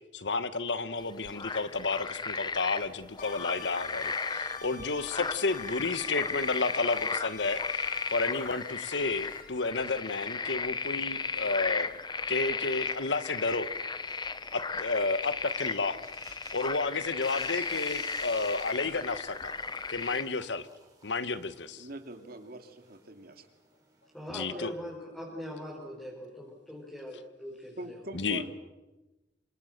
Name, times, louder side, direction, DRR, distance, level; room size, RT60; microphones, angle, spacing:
voice 1, 0.1-11.9 12.3-13.7 14.5-16.0 16.5-19.5 19.9-20.7 21.0-21.9 24.3-24.7 28.1-28.4, left 3 dB, 80° left, 13 dB, 1.3 m, -31 dB
sound 1, 1.0-20.2, left 4 dB, 25° left, 0.8 m, -35 dB
sound 2, 3.2-9.4, left 4 dB, 55° left, 5.2 m, -46 dB
sound 3, 15.4-24.6, right 4 dB, 20° right, 5.6 m, -56 dB
voice 2, 21.7-23.5 27.8-28.5, right 1 dB, 60° right, 6 dB, 2.7 m, -43 dB
voice 3, 24.1-28.0, equal, 5° left, -4 dB, 5.1 m, -41 dB
28.0 x 25.5 x 6.7 m, 1.1 s
head